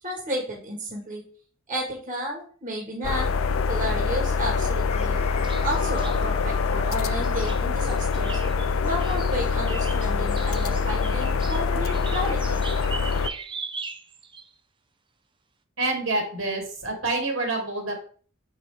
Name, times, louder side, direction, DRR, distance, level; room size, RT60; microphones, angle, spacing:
voice 1, 0.0-1.2 1.7-3.3 3.7-5.2 5.6-8.4 8.8-12.6, equal, 40° right, -1 dB, 1.7 m, -32 dB
sound 1, 3.0-13.3, left 5 dB, 85° left, 0.5 m, -25 dB
Chicken rooster, 4.5-7.4, left 6 dB, 30° left, 0.6 m, -39 dB
sound 2, 5.0-5.1 5.4-6.2 7.2-14.5, right 5 dB, 25° right, 0.6 m, -39 dB
voice 2, 15.8-17.9, right 2 dB, 80° right, 1 dB, 2.4 m, -27 dB
6.8 x 4.9 x 3.4 m, 0.43 s
head